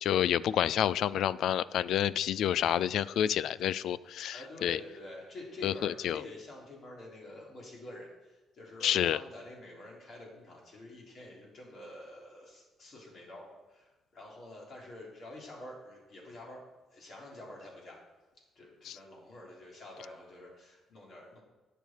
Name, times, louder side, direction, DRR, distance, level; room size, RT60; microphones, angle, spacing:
voice 1, 0.0-4.8 5.6-6.2 8.8-9.2 18.9-19.0, left 10 dB, 65° left, 19 dB, 0.4 m, -29 dB
voice 2, 4.3-16.6 16.9-18.0 18.6-21.4, left 1 dB, 40° left, -2 dB, 3.8 m, -48 dB
19.5 x 6.9 x 4.6 m, 1.2 s
cardioid pair, 170°, 0 cm